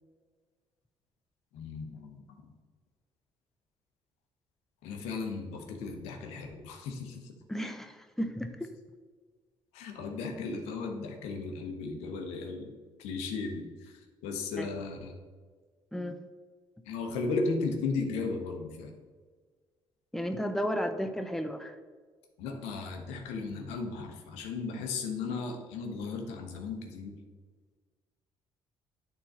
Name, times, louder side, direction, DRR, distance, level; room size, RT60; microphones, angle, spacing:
voice 1, 1.5-2.4 4.8-7.4 9.7-12.7 13.0-15.1 16.8-19.0 22.4-27.2, left 4 dB, 90° left, 3 dB, 1.0 m, -36 dB
voice 2, 7.5-8.7 14.6-14.7 15.9-16.2 20.1-21.8, equal, 5° left, 7 dB, 0.7 m, -33 dB
8.9 x 3.9 x 4.2 m, 1.5 s
supercardioid pair, 65°, 11 cm